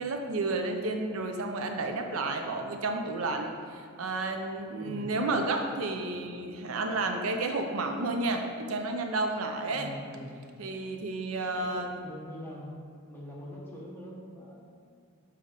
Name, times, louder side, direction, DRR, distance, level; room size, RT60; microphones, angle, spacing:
voice 1, 0.0-9.9 10.6-12.0, right 2 dB, 85° right, 4 dB, 0.6 m, -31 dB
voice 2, 4.8-5.2 9.7-10.3 11.6-12.7 13.1-14.8, equal, 10° left, -5 dB, 1.1 m, -43 dB
7.2 x 4.2 x 3.7 m, 2.2 s
head